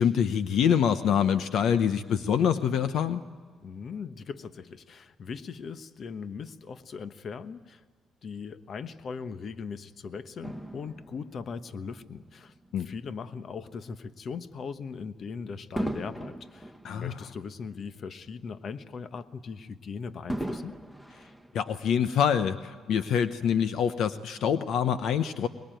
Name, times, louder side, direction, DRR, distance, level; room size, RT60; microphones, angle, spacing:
voice 1, 0.0-3.2 12.7-12.9 16.8-17.3 21.5-25.5, left 8 dB, 75° left, 10 dB, 0.9 m, -25 dB
voice 2, 3.6-7.8 8.2-12.5 12.8-20.8, left 5 dB, 55° left, 11 dB, 1.1 m, -39 dB
Fireworks, 10.4-13.0 13.7-13.9 15.8-18.3 18.6-18.7 20.3-22.2 22.9-23.0, right 1 dB, 5° left, 1.3 m, -39 dB
23.0 x 21.5 x 9.1 m, 1.5 s
cardioid pair, 90°, 0 cm